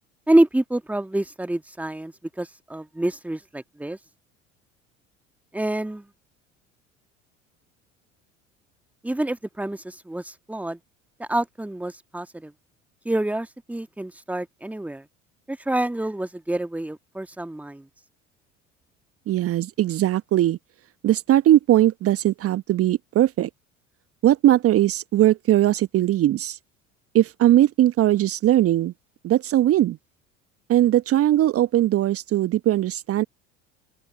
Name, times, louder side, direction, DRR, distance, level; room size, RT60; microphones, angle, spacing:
voice 1, 0.3-4.0 5.5-6.1 9.0-10.8 11.2-12.5 13.1-15.0 15.5-17.9, right 1 dB, 5° right, 1.8 m, -27 dB
voice 2, 19.3-20.6 21.0-23.5 24.2-26.6 27.1-28.9 29.2-30.0 30.7-33.2, right 13 dB, 40° right, 1.2 m, -19 dB
open air
figure-of-eight pair, 65°, 37 cm